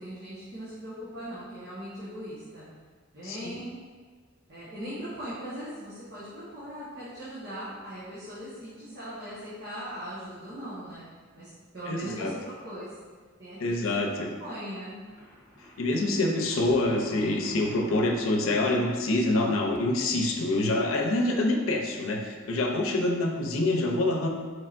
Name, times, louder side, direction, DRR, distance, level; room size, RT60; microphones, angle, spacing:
voice 1, 0.0-2.7 3.1-3.7 4.5-11.1 11.3-13.0 13.4-14.1 14.4-15.0, equal, 55° right, -12 dB, 1.2 m, -39 dB
voice 2, 3.2-3.6 11.9-12.3 13.6-14.3 15.8-24.3, left 2 dB, 80° left, 2 dB, 0.6 m, -26 dB
Thunder, 15.1-20.9, left 1 dB, 10° right, 1.4 m, -48 dB
4.7 x 4.4 x 2.5 m, 1.6 s
head